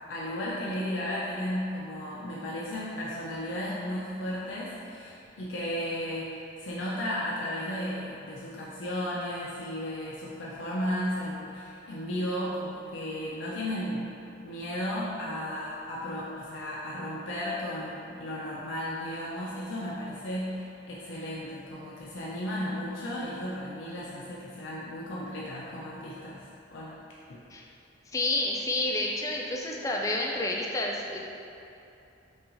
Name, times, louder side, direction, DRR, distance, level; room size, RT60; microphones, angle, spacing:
voice 1, 0.1-14.0 14.4-27.0 27.3-27.4, equal, 80° left, -6 dB, 0.5 m, -34 dB
voice 2, 28.1-31.2, left 2 dB, 15° left, -1 dB, 0.3 m, -29 dB
5.6 x 2.4 x 2.6 m, 2.8 s
head